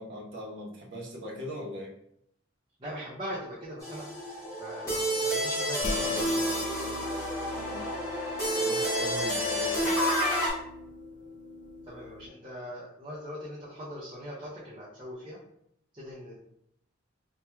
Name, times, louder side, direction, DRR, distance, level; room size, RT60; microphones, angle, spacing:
voice 1, 0.0-1.9 7.5-7.9 8.6-10.0, equal, 60° right, -3 dB, 0.8 m, -40 dB
voice 2, 2.8-7.4 11.9-15.4 15.9-16.4, equal, 25° right, -8 dB, 0.6 m, -41 dB
sound 1, 3.8-10.5, equal, 15° left, 1.4 m, -29 dB
sound 2, 5.8-12.3, left 2 dB, 40° left, 0.4 m, -40 dB
4.3 x 2.3 x 2.3 m, 0.72 s
head